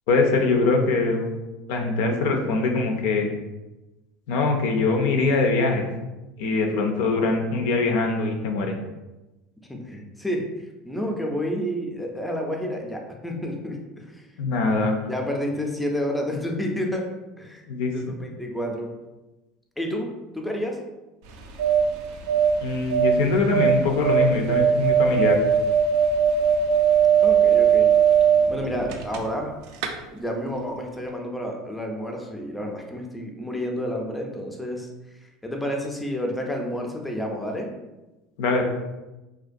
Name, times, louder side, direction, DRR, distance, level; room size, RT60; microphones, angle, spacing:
voice 1, 0.1-1.3 1.7-3.3 4.3-5.8 6.4-8.7 14.4-15.0 17.7-17.9 22.6-25.4 38.4-38.6, left 3 dB, 75° left, 3 dB, 0.4 m, -22 dB
voice 2, 9.7-10.4 10.9-14.3 15.1-17.1 17.4-17.6 17.9-18.9 19.8-20.8 27.2-27.9 28.5-29.5 30.1-34.9 35.4-37.7, equal, 5° left, 1 dB, 0.4 m, -30 dB
sound 1, 21.3-29.5 29.7-29.9, right 8 dB, 75° right, 0.3 m, -20 dB
2.4 x 2.2 x 2.5 m, 1.1 s
supercardioid pair, 100°, 0 cm